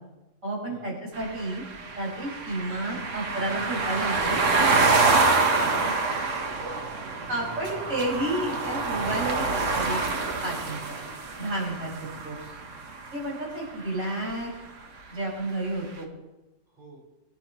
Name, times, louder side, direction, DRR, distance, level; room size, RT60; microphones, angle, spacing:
voice 1, 0.4-1.6 1.9-4.5 5.6-5.9 6.6-6.7 7.3-10.0 10.4-11.0 11.4-12.4 13.1-14.5 15.1-16.1, right 1 dB, 85° right, -6 dB, 6.8 m, -31 dB
sound 1, 1.2-13.2, right 3 dB, 70° right, 1.6 m, -26 dB
voice 2, 5.4-6.8 7.2-7.6 16.7-17.0, right 2 dB, 40° right, -6 dB, 4.8 m, -48 dB
24.5 x 10.5 x 3.2 m, 1.1 s
omnidirectional pair, 1.3 m